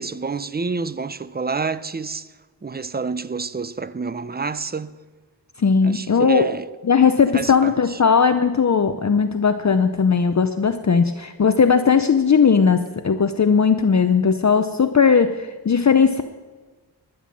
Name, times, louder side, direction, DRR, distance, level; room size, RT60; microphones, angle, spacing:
voice 1, 0.0-2.3 2.6-4.9 5.8-6.7 7.3-8.0, right 4 dB, 25° right, 0.5 m, -28 dB
voice 2, 5.6-6.5 6.8-16.2, left 6 dB, 40° left, 0.7 m, -18 dB
12.0 x 10.5 x 7.5 m
wide cardioid pair, 85°, 41 cm